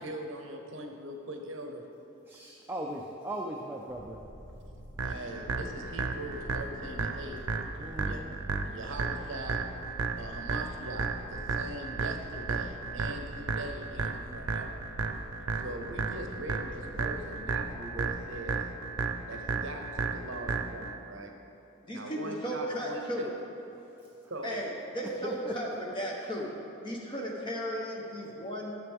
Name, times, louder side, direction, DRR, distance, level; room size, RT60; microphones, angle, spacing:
voice 1, 0.0-1.8 5.0-7.4 8.0-8.2 8.7-9.6 10.2-14.7 15.6-18.6 19.2-21.3 21.9-23.3 24.3-24.6, right 1 dB, 65° right, 3 dB, 0.8 m, -41 dB
voice 2, 2.3-4.2 7.8-8.3 23.8-24.3 25.2-25.9, equal, 10° right, -1 dB, 0.4 m, -39 dB
sound 1, 3.9-18.3, equal, 75° left, 1.7 m, -48 dB
sound 2, 5.0-21.0, right 4 dB, 85° right, 0.6 m, -34 dB
voice 3, 21.8-23.3 24.4-25.7 25.9-26.5 26.8-28.8, equal, 20° left, -2 dB, 1.0 m, -35 dB
12.0 x 6.8 x 3.5 m, 2.9 s
head